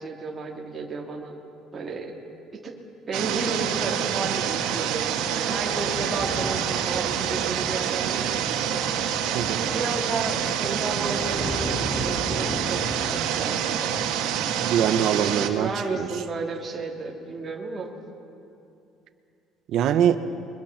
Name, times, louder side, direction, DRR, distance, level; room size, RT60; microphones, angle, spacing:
voice 1, 0.0-1.4 1.7-2.1 2.5-2.8 3.1-8.8 9.6-12.9 13.3-13.9 15.1-17.9, right 3 dB, 25° right, -1 dB, 2.9 m, -32 dB
sound 1, 3.1-15.5, right 9 dB, 85° right, 2.1 m, -27 dB
sound 2, 5.6-13.3, equal, 20° left, 3.5 m, -37 dB
voice 2, 14.6-16.1 19.7-20.2, right 9 dB, 55° right, 10 dB, 1.1 m, -23 dB
28.5 x 23.0 x 6.0 m, 2.6 s
cardioid pair, 150°, 0 cm